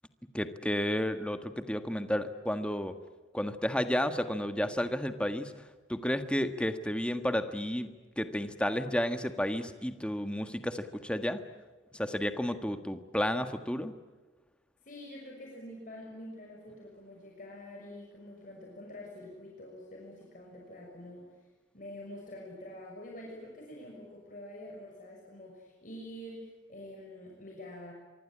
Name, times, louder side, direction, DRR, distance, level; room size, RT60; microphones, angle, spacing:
voice 1, 0.3-2.9 3.3-5.5 5.9-11.4 11.9-13.9, equal, 5° left, 8 dB, 1.5 m, -32 dB
voice 2, 14.8-21.3 21.7-27.9, left 1 dB, 45° left, -1 dB, 6.2 m, -46 dB
25.5 x 23.5 x 8.8 m, 1.3 s
head